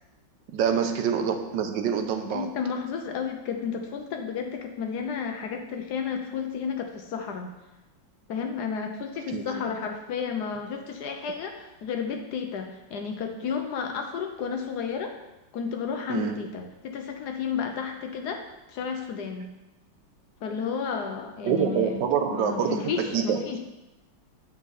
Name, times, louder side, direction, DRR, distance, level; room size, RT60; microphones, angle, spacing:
voice 1, 0.5-2.5 9.3-9.5 16.1-16.3 21.4-23.4, right 7 dB, 75° right, 5 dB, 1.3 m, -26 dB
voice 2, 2.3-7.5 8.3-15.1 15.5-18.4 18.7-19.5 20.4-22.0 22.3-23.6, left 6 dB, 65° left, 4 dB, 1.1 m, -32 dB
7.4 x 5.5 x 3.9 m, 0.99 s
omnidirectional pair, 2.1 m